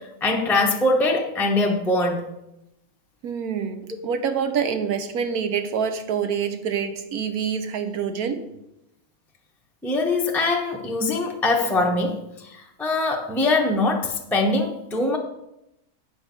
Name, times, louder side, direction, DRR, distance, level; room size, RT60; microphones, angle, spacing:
voice 1, 0.0-2.3 9.8-15.2, left 2 dB, ahead, 1 dB, 0.6 m, -23 dB
voice 2, 3.2-8.4, right 7 dB, 70° right, 8 dB, 1.3 m, -26 dB
8.4 x 4.9 x 6.7 m, 0.85 s
omnidirectional pair, 1.7 m